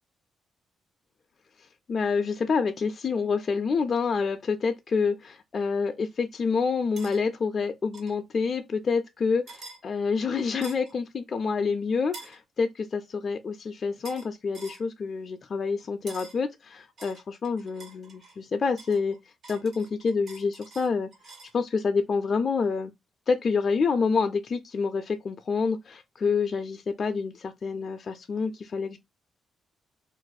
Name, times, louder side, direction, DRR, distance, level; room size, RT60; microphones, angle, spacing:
voice 1, 1.9-19.2 19.5-21.1 21.5-22.9 23.3-29.0, left 5 dB, 45° left, 0.3 m, -27 dB
sound 1, 7.0-7.2 7.9-8.2 9.5-9.8 10.6-10.9 12.1-12.4 14.0-14.3 14.5-14.8 16.1-16.4 17.0-18.4 18.8-21.6, right 3 dB, 55° right, 0.9 m, -46 dB
2.4 x 2.1 x 3.9 m
cardioid pair, 90°, 0 cm